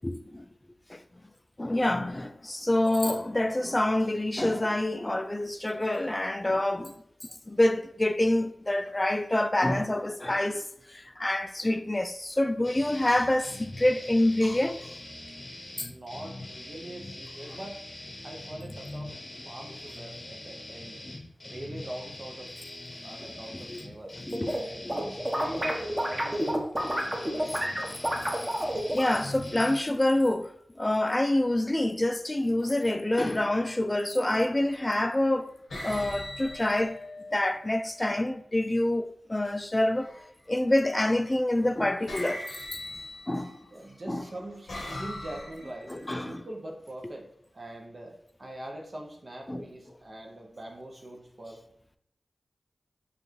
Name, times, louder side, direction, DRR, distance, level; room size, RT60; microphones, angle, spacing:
voice 1, 0.0-0.4 0.9-1.0 1.6-7.0 7.5-14.9 15.8-15.9 17.5-17.6 21.0-21.2 23.5-23.8 24.2-25.0 26.9-27.1 28.9-30.5 30.8-35.6 35.8-37.0 37.3-40.1 40.5-42.6 43.3-43.6 44.1-44.2 45.9-46.4 49.5-49.7, left 1 dB, 25° left, 0.3 m, -27 dB
sound 1, 12.6-29.8, left 1 dB, 40° left, 0.7 m, -43 dB
voice 2, 15.9-17.8 18.2-21.0 21.4-28.3 43.7-47.3 47.5-51.6, right 1 dB, 50° right, 0.7 m, -43 dB
sound 2, 24.0-24.6 24.9-29.1, equal, 20° right, 0.9 m, -29 dB
sound 3, 33.4-33.7 34.6-35.1 35.7-37.7 39.9-40.5 41.5-41.7 42.1-43.7 44.3-46.0, left 1 dB, 85° left, 0.9 m, -40 dB
5.0 x 2.4 x 3.1 m
cardioid pair, 50°, 0 cm